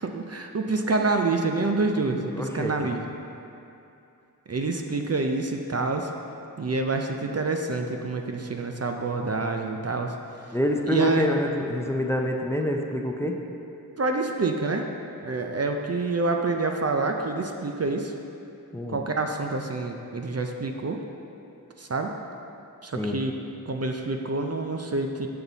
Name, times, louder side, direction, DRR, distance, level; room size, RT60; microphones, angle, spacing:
voice 1, 0.0-3.0 4.5-6.1 6.6-10.1 10.9-11.3 14.0-14.9 15.2-18.1 18.9-21.0 21.8-22.1 22.8-23.3 23.7-25.3, right 3 dB, 45° right, 3 dB, 0.5 m, -27 dB
voice 2, 2.3-2.7 10.5-13.4 18.7-19.0 23.0-23.2, equal, 5° left, 2 dB, 0.5 m, -26 dB
7.7 x 5.6 x 4.0 m, 2.7 s
wide cardioid pair, 60°, 36 cm